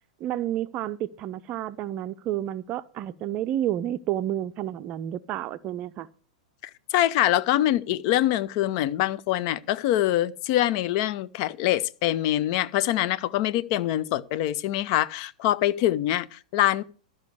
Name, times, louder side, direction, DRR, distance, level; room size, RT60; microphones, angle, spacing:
voice 1, 0.2-6.1, right 12 dB, 30° right, 0.5 m, -30 dB
voice 2, 6.9-16.8, left 13 dB, 40° left, 0.6 m, -24 dB
12.5 x 5.5 x 8.0 m
figure-of-eight pair, 100°, 4 cm